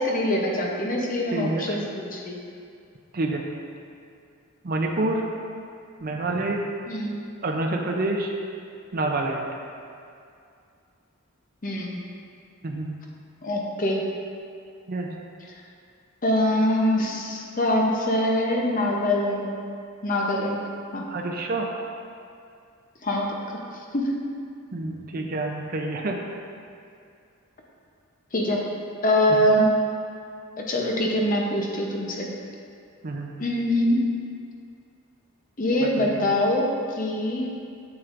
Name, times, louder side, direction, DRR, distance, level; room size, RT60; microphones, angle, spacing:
voice 1, 0.0-2.4 6.9-7.2 11.6-12.0 13.4-14.0 16.2-19.6 20.0-20.6 20.9-21.1 23.0-24.1 28.3-28.6 29.0-29.7 30.7-32.3 33.4-34.1 35.6-37.5, left 1 dB, 40° left, -1 dB, 0.8 m, -24 dB
voice 2, 1.3-1.8 3.1-3.4 4.6-5.3 6.0-6.6 7.4-8.3 8.9-9.5 12.6-12.9 14.9-15.1 21.1-21.7 24.7-26.2 33.0-33.3 36.0-36.1, right 2 dB, 45° right, 1 dB, 0.6 m, -27 dB
7.6 x 7.1 x 2.6 m, 2.4 s
head